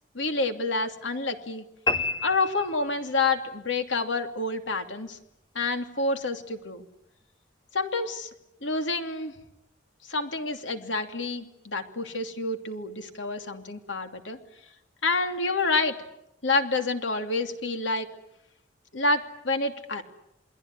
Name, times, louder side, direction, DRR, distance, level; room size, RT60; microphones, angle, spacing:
voice 1, 0.1-1.6 2.2-5.2 5.5-6.8 7.7-8.3 8.6-9.3 10.1-14.4 15.0-16.0 16.4-18.1 18.9-20.0, left 3 dB, 85° left, 6 dB, 2.9 m, -28 dB
sound 1, 1.9-3.4, left 3 dB, 25° left, 1.5 m, -30 dB
28.5 x 21.5 x 9.8 m, 0.83 s
head